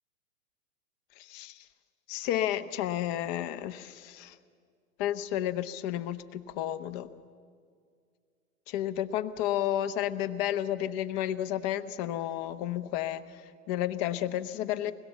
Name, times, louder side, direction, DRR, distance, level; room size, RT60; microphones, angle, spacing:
voice 1, 1.2-1.7 2.1-4.4 5.0-7.1 8.7-14.9, left 12 dB, 35° left, 12 dB, 1.0 m, -32 dB
23.5 x 21.0 x 7.2 m, 2.1 s
hypercardioid pair, 120°, 41 cm